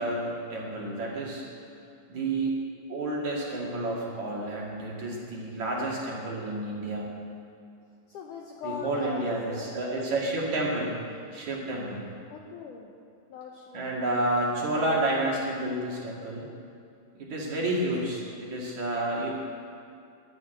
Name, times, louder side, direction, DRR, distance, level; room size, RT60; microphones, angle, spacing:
voice 1, 0.0-1.4 2.1-2.5 2.9-7.1 8.6-11.0 11.3-12.1 13.7-16.5 17.2-19.3, right 2 dB, 50° right, -3 dB, 2.8 m, -30 dB
voice 2, 8.1-9.7 12.3-12.9 13.3-14.3, left 6 dB, 90° left, 0 dB, 1.8 m, -41 dB
11.0 x 11.0 x 9.0 m, 2.5 s
omnidirectional pair, 4.9 m